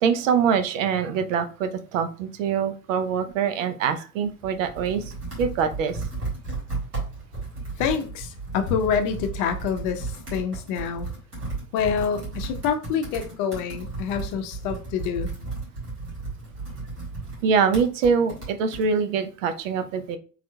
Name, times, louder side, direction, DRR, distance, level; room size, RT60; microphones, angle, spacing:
voice 1, 0.0-5.0 5.4-6.0 17.4-20.2, right 6 dB, 55° right, 0.7 m, -24 dB
Computer keyboard, 4.2-18.9, right 3 dB, 90° right, 2.0 m, -34 dB
voice 2, 7.8-11.1 11.7-15.3, left 7 dB, 40° left, 0.7 m, -27 dB
4.3 x 3.9 x 2.2 m
figure-of-eight pair, 70°, 46 cm